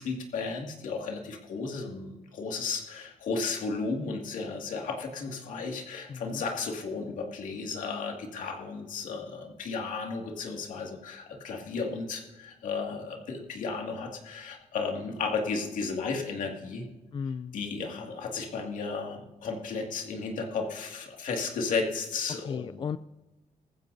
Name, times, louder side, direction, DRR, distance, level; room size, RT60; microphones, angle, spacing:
voice 1, 0.0-16.9 17.5-22.8, left 4 dB, 80° left, 1 dB, 2.2 m, -34 dB
voice 2, 6.1-6.4 17.1-17.6 22.5-23.0, left 6 dB, 40° left, 14 dB, 0.3 m, -35 dB
19.5 x 14.5 x 2.7 m, 1.1 s
cardioid pair, 100°, 13 cm